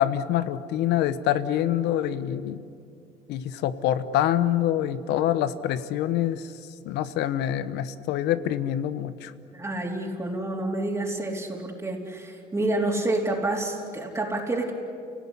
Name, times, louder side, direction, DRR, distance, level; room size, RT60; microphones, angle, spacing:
voice 1, 0.0-2.6 3.3-6.5 6.8-9.3, left 11 dB, 85° left, 13 dB, 1.1 m, -25 dB
voice 2, 9.5-14.7, right 2 dB, 15° right, -2 dB, 3.6 m, -28 dB
29.5 x 18.0 x 10.0 m, 2.5 s
cardioid pair, 110°, 17 cm